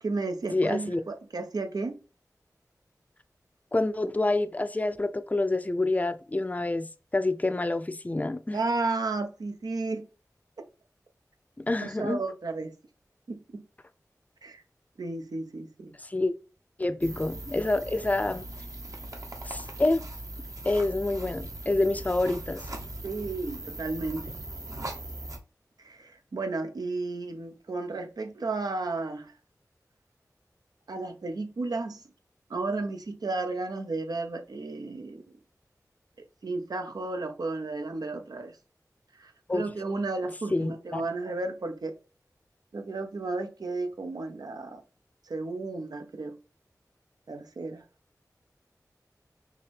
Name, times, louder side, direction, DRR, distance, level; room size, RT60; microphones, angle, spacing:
voice 1, 0.0-2.0 8.5-10.1 11.8-12.7 13.3-13.6 14.4-14.6 15.0-16.0 17.1-17.2 23.0-24.3 25.8-29.3 30.9-32.0 32.5-35.2 36.4-38.6 39.1-42.0 42.7-44.8 45.2-46.4 47.3-47.8, right 3 dB, 80° right, 0.6 m, -33 dB
voice 2, 0.5-1.0 3.7-8.6 11.6-12.2 16.0-16.3 16.8-18.5 19.5-20.0 20.6-22.6 39.5-39.6 40.5-41.0, left 2 dB, 25° left, 0.4 m, -27 dB
sound 1, 17.0-25.4, right 1 dB, 55° right, 0.9 m, -40 dB
5.7 x 2.1 x 3.3 m
wide cardioid pair, 50°, 7 cm